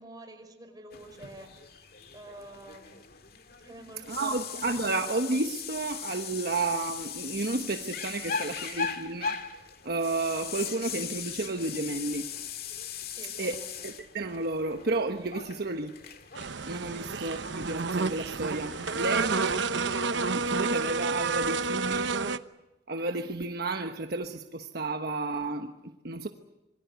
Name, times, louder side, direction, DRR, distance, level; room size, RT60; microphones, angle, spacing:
voice 1, 0.0-1.5 2.1-3.0 3.6-4.4 13.2-13.7, right 1 dB, 20° right, 5.4 m, -48 dB
sound 1, 0.9-20.1, left 7 dB, 55° left, 2.1 m, -40 dB
voice 2, 4.1-9.4 9.8-12.3 13.4-13.6 13.8-16.0 16.7-19.5 20.3-22.1 22.9-26.3, right 3 dB, 55° right, 1.2 m, -32 dB
sound 2, 16.3-22.4, right 4 dB, 80° right, 1.0 m, -30 dB
27.0 x 22.5 x 8.1 m
head